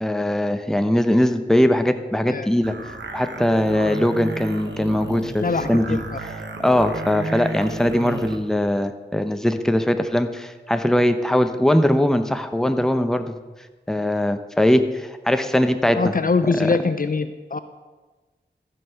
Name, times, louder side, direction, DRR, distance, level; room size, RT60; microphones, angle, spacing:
voice 1, 0.0-2.8 3.1-6.0 6.6-13.3 13.9-16.1 16.6-16.7, left 1 dB, 5° left, 8 dB, 0.8 m, -20 dB
sound 1, 2.6-8.4, right 3 dB, 80° right, 1.0 m, -33 dB
voice 2, 5.4-6.2 16.0-17.6, left 4 dB, 50° left, 11 dB, 0.6 m, -23 dB
14.5 x 5.6 x 5.8 m, 1.3 s
cardioid pair, 45°, 19 cm